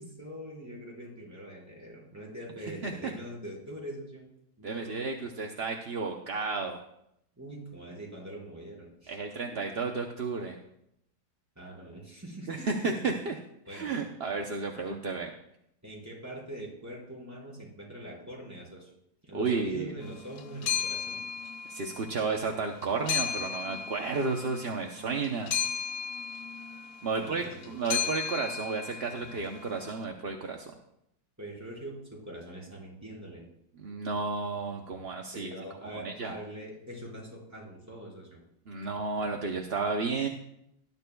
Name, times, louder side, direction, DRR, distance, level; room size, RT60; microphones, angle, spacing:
voice 1, 0.0-4.3 4.6-5.1 7.4-9.2 9.5-9.6 11.5-13.0 13.7-14.0 15.8-18.9 19.2-21.2 27.1-27.8 31.4-33.4 35.3-38.4, right 1 dB, 10° right, -5 dB, 4.7 m, -43 dB
voice 2, 4.6-6.8 9.1-10.6 12.5-13.4 13.7-15.3 19.3-19.9 21.7-25.5 27.0-30.7 33.8-35.5 36.0-36.4 38.7-40.3, right 4 dB, 50° right, 2 dB, 0.8 m, -32 dB
sound 1, 20.0-30.0, left 7 dB, 70° left, 1.3 m, -35 dB
19.0 x 12.0 x 2.3 m, 0.77 s
omnidirectional pair, 1.9 m